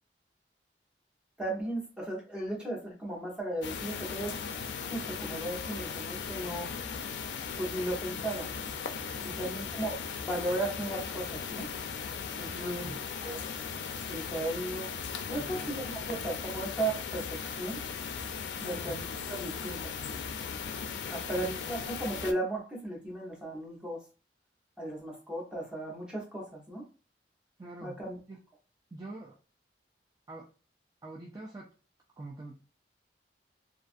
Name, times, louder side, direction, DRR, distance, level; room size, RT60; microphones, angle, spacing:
voice 1, 1.4-4.4 4.8-6.7 7.6-8.5 9.2-11.7 12.4-12.9 13.2-13.4 14.1-14.9 15.3-17.8 18.6-19.0 19.3-19.9 21.1-24.0 24.8-26.9 27.8-28.2, right 1 dB, 5° right, -2 dB, 0.8 m, -36 dB
sound 1, 3.6-22.3, left 6 dB, 85° left, 0.4 m, -38 dB
voice 2, 12.5-13.0 13.9-14.0 15.4-16.2 18.6-19.0 21.3-21.5 27.6-28.0 28.3-28.4 28.9-29.4 30.3-30.5 31.0-31.7 32.2-32.7, right 2 dB, 20° right, -3 dB, 0.4 m, -45 dB
2.5 x 2.3 x 2.5 m, 0.33 s
head